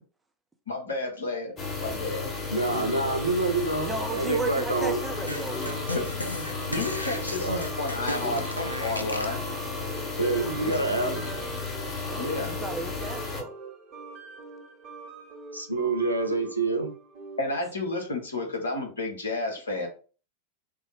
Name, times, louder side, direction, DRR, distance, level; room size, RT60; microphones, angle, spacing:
voice 1, 0.7-1.5 1.8-2.3 5.9-6.2 6.7-9.4 12.2-12.5 17.4-19.9, left 2 dB, 70° left, 1.0 m, -31 dB
sound 1, 1.6-13.4, left 3 dB, 25° left, 0.9 m, -33 dB
voice 2, 2.5-5.0 7.4-7.6 10.2-11.1 15.5-16.9, right 2 dB, 85° right, 0.6 m, -27 dB
sound 2, 2.8-17.6, right 4 dB, 30° right, 0.9 m, -44 dB
voice 3, 3.8-5.8 10.4-10.9 12.1-13.6, right 3 dB, 5° right, 0.5 m, -35 dB
sound 3, 5.3-9.4, left 1 dB, 85° left, 0.4 m, -35 dB
3.3 x 2.0 x 3.4 m
figure-of-eight pair, 90°, 0 cm